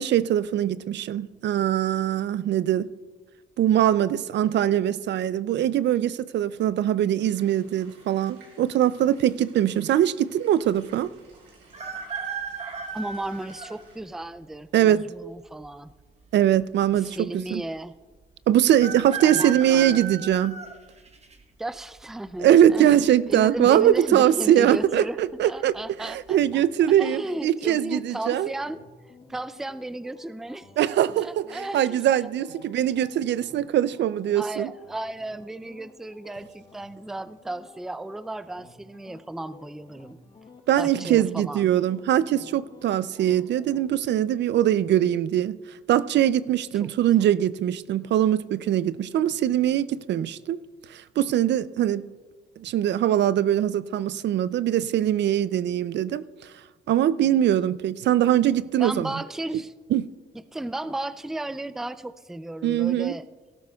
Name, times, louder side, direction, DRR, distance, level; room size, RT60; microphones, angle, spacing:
voice 1, 0.0-2.9 3.6-11.1 14.7-15.1 16.3-17.6 18.5-20.6 22.4-25.7 26.0-28.5 30.8-34.7 40.7-45.6 45.9-50.6 50.9-52.0 52.6-56.5 56.9-59.1 59.5-59.6 59.9-60.1 62.6-63.2, right 11 dB, 65° right, 0.4 m, -22 dB
sound 1, 7.2-14.0, right 3 dB, 90° right, 4.2 m, -56 dB
sound 2, 11.7-13.8 14.4-14.5 15.6-16.2 16.5-16.6 16.8-16.9 18.7-21.4 21.9-22.3 23.4-23.8 24.0-24.1 24.7-25.0 25.5-25.7, right 6 dB, 35° right, 1.1 m, -35 dB
voice 2, 12.9-15.9 17.0-18.0 19.2-20.1 21.6-22.9 23.3-26.6 27.0-28.8 29.3-30.7 31.2-32.3 34.4-40.2 40.8-41.7 46.7-46.9 58.8-59.7 60.5-63.3, right 1 dB, ahead, 0.4 m, -34 dB
sound 3, 26.2-43.9, left 4 dB, 35° left, 4.4 m, -53 dB
18.0 x 12.5 x 2.3 m
cardioid pair, 90°, 20 cm